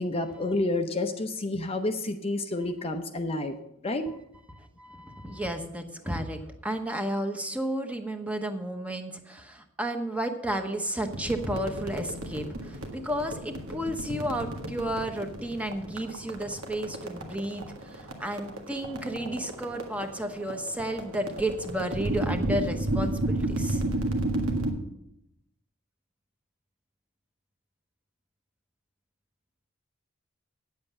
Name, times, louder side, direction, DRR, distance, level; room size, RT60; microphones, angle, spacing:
voice 1, 0.0-3.5 3.8-4.0, left 2 dB, 30° left, 6 dB, 0.7 m, -29 dB
voice 2, 4.5-23.8, right 1 dB, 5° right, 5 dB, 1.0 m, -32 dB
sound 1, 11.0-24.7, right 1 dB, 90° right, 1.7 m, -33 dB
9.7 x 7.8 x 6.9 m, 0.81 s
head